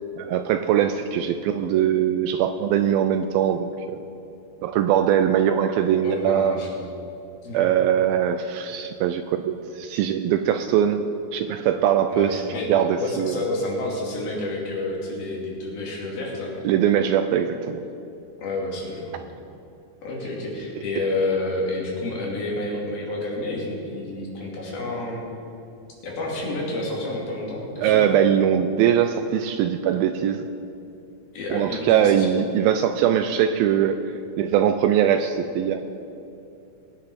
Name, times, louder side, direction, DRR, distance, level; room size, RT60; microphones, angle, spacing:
voice 1, 0.2-4.0 4.6-6.5 7.5-11.0 11.3-12.4 12.7-13.4 16.7-17.8 27.8-30.5 31.5-34.0 34.4-35.8, right 9 dB, 80° right, 8 dB, 2.2 m, -21 dB
voice 2, 6.0-6.7 7.4-7.6 12.1-12.7 13.0-16.6 18.4-19.1 20.0-25.2 26.0-28.0 31.3-32.3, left 2 dB, 70° left, -3 dB, 4.3 m, -29 dB
22.5 x 9.5 x 4.1 m, 2.8 s
omnidirectional pair, 4.6 m